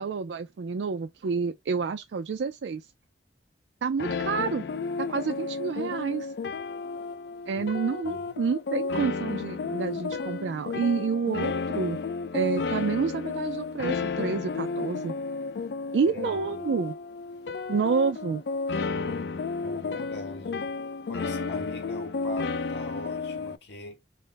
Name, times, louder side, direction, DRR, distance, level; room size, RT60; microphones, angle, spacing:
voice 1, 0.0-2.8 3.8-4.7 5.0-6.3 7.5-12.0 12.3-15.1 15.9-16.9 17.7-18.4, right 5 dB, 85° right, 0.4 m, -29 dB
sound 1, 4.0-23.6, left 4 dB, 65° left, 0.4 m, -32 dB
voice 2, 16.0-16.6 18.9-20.6 21.1-24.0, left 2 dB, 80° left, 1.7 m, -42 dB
5.4 x 2.1 x 3.3 m
head